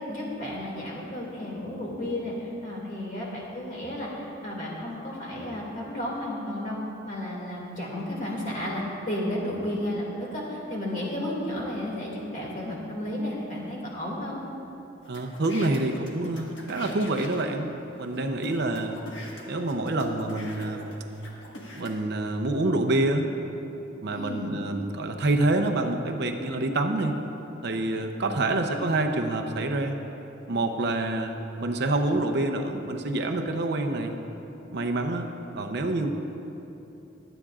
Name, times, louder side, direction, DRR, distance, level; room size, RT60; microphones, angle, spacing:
voice 1, 0.1-6.8 7.0-14.4 24.1-24.5, left 1 dB, 40° left, -3 dB, 2.3 m, -33 dB
sound 1, 15.0-17.6 18.1-18.2 18.4-21.9, left 1 dB, 65° left, 1.6 m, -43 dB
voice 2, 15.1-19.0 19.4-20.9 21.7-23.3 24.0-27.2 27.6-30.0 30.5-34.2 34.7-35.3 35.6-36.1, right 2 dB, 55° right, 4 dB, 0.7 m, -27 dB
22.5 x 8.9 x 2.4 m, 3.0 s
head